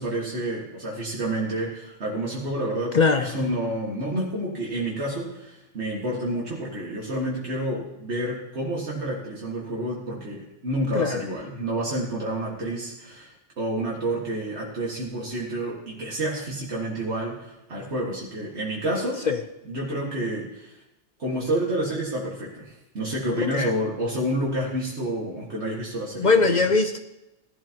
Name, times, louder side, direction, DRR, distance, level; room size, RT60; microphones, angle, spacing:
voice 1, 0.0-19.2 19.7-20.8 21.2-26.6, right 1 dB, 75° right, -4 dB, 2.1 m, -29 dB
voice 2, 2.9-3.3 10.9-11.2 19.2-19.4 23.4-23.7 26.2-27.0, left 4 dB, 50° left, 7 dB, 0.7 m, -21 dB
17.0 x 11.5 x 2.9 m, 0.94 s
omnidirectional pair, 1.2 m